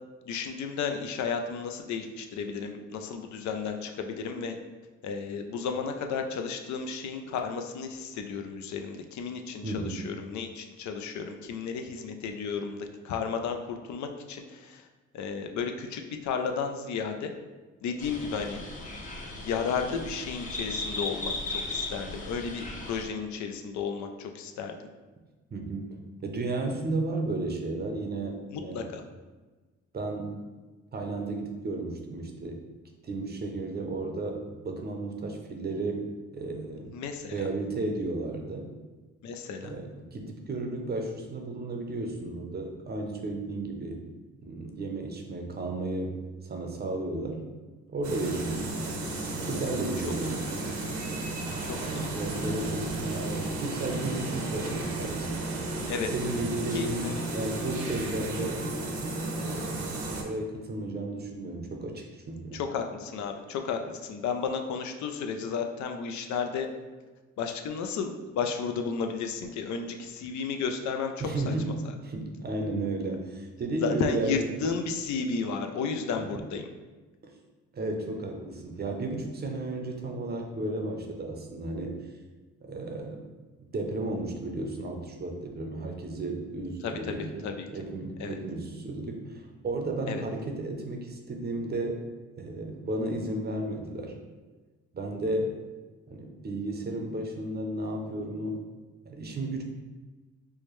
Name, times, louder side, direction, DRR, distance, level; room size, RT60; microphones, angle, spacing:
voice 1, 0.3-4.6 5.0-14.9 15.1-17.3 17.8-18.6 19.4-24.8 28.5-29.0 36.9-37.4 39.2-39.7 50.4-50.5 51.6-52.1 55.9-56.1 56.7-57.1 62.5-66.7 67.4-71.8 73.8-76.7 87.1-87.7 88.2-88.4 90.1-90.2, left 5 dB, 70° left, 5 dB, 0.5 m, -33 dB
voice 2, 9.6-10.1 25.5-29.0 29.9-30.4 30.9-32.6 33.0-36.1 36.3-36.9 37.3-38.7 39.6-44.0 44.4-47.4 47.9-48.9 49.4-50.7 51.8-55.4 56.1-58.6 59.4-59.9 60.2-62.6 71.2-74.4 76.2-76.3 77.7-82.0 82.6-83.2 83.7-92.1 92.4-94.1 94.9-95.5 96.1-98.6 99.1-99.6, right 2 dB, 35° right, 3 dB, 0.6 m, -33 dB
sound 1, 18.0-23.1, left 2 dB, 25° left, 0.7 m, -36 dB
sound 2, 48.0-60.2, right 2 dB, 70° right, 0.8 m, -33 dB
4.7 x 2.2 x 3.1 m, 1.3 s
cardioid pair, 90°, 30 cm